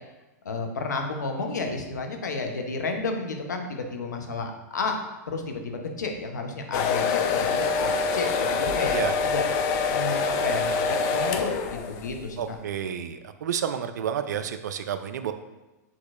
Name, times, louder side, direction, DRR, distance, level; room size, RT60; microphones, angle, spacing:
voice 1, 0.4-5.0 5.3-9.0 9.2-9.5 9.9-12.6, left 3 dB, 90° left, 4 dB, 0.7 m, -31 dB
sound 1, 6.7-12.2, left 5 dB, 45° left, 0.4 m, -25 dB
voice 2, 12.4-15.3, right 8 dB, 75° right, 10 dB, 0.4 m, -30 dB
6.3 x 3.0 x 2.4 m, 1.1 s
hypercardioid pair, 115°, 9 cm